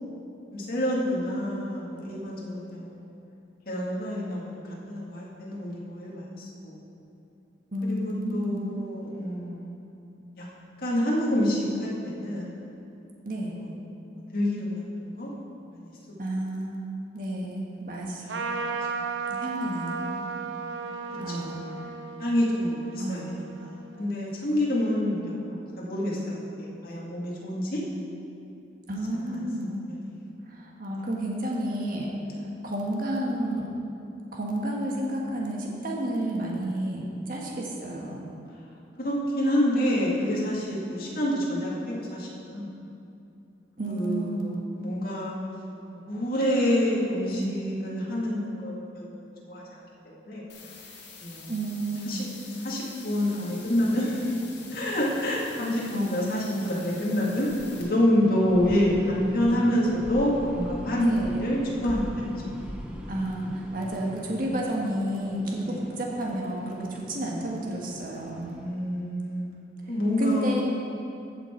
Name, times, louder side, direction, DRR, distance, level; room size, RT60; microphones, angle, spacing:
voice 1, 0.5-3.1 3.7-6.8 7.8-9.8 10.4-10.5 10.8-12.6 14.3-15.3 15.7-15.9 18.2-18.7 21.3-21.4 22.2-27.8 29.3-30.0 32.3-32.4 39.0-42.7 43.8-45.4 46.1-49.6 50.3-50.4 51.2-51.5 52.0-52.3 52.6-54.3 54.7-57.5 57.8-62.3 65.6-65.8 68.5-69.4 69.9-70.6, left 1 dB, 55° left, -5 dB, 2.1 m, -28 dB
voice 2, 7.7-8.7 13.2-13.5 16.2-16.9 17.1-18.2 19.3-20.2 21.2-21.9 23.0-23.4 28.9-29.8 30.5-32.1 32.6-33.7 34.3-38.3 43.8-44.6 47.3-47.5 51.5-52.2 55.9-56.7 61.0-61.3 63.1-68.6 69.8-70.6, right 1 dB, 50° right, -2 dB, 1.5 m, -31 dB
Trumpet, 18.3-24.1, right 5 dB, 80° right, 0.7 m, -35 dB
sound 1, 50.5-57.8, left 5 dB, 70° left, 1.9 m, -47 dB
sound 2, 53.4-68.6, equal, 5° right, 0.7 m, -42 dB
15.0 x 6.0 x 4.5 m, 2.7 s
head